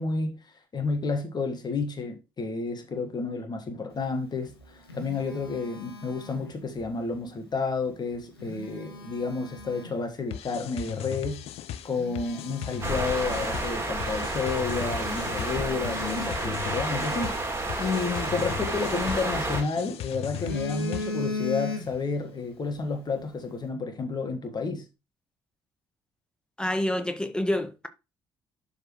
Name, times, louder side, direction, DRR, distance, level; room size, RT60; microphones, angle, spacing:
voice 1, 0.0-11.4 11.8-24.9, left 4 dB, 35° left, 1.6 m, -31 dB
Telephone, 4.3-6.9 8.2-10.1 10.7-10.9 11.4-11.5 11.8-13.9 14.2-14.3 14.8-17.2 18.7-19.7 20.1-22.2 22.5-22.7, left 3 dB, 80° left, 1.6 m, -38 dB
sound 1, 10.3-21.4, left 11 dB, 55° left, 0.7 m, -38 dB
sound 2, 12.8-19.6, right 2 dB, 20° right, 2.6 m, -30 dB
voice 2, 26.6-27.9, left 1 dB, 5° left, 1.6 m, -27 dB
11.5 x 4.3 x 3.1 m
figure-of-eight pair, 45°, 12 cm